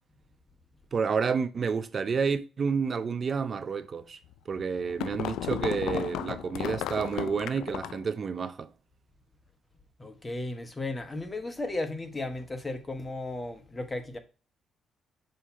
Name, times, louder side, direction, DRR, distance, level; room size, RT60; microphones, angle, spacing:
voice 1, 0.9-4.2 4.5-8.7, right 5 dB, 45° right, 0.4 m, -30 dB
sound 1, 4.3-8.1, left 12 dB, 85° left, 0.3 m, -34 dB
voice 2, 10.0-14.2, left 2 dB, 20° left, 1.1 m, -35 dB
6.4 x 2.8 x 5.6 m
cardioid pair, 90°, 0 cm